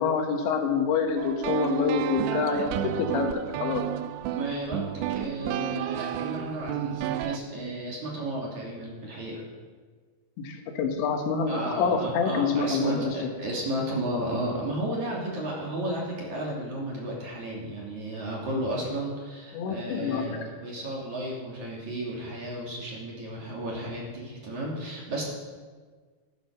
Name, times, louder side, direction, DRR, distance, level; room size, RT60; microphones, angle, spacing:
voice 1, 0.0-3.3 3.6-3.8 10.4-13.3 19.5-20.5, left 6 dB, 75° left, 4 dB, 3.6 m, -27 dB
sound 1, 1.2-7.4, right 12 dB, 85° right, 2.9 m, -31 dB
voice 2, 4.3-9.4 11.5-25.2, right 1 dB, 45° right, -3 dB, 3.7 m, -33 dB
15.0 x 12.5 x 6.5 m, 1.5 s
omnidirectional pair, 5.3 m